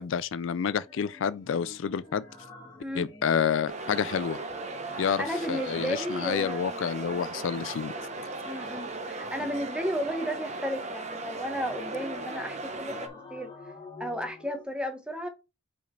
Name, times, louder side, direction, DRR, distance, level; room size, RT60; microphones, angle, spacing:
voice 1, 0.0-2.2 3.0-4.4 5.0-7.9, left 7 dB, 70° left, 0.4 m, -29 dB
sound 1, 0.8-3.6 3.9-6.2 7.4-9.9 11.3-14.6, left 3 dB, 20° left, 1.6 m, -49 dB
sound 2, 3.7-13.1, right 2 dB, 35° right, 1.0 m, -37 dB
voice 2, 4.8-6.8 8.4-13.5 14.0-15.3, equal, 5° right, 1.0 m, -34 dB
5.1 x 4.8 x 4.5 m
head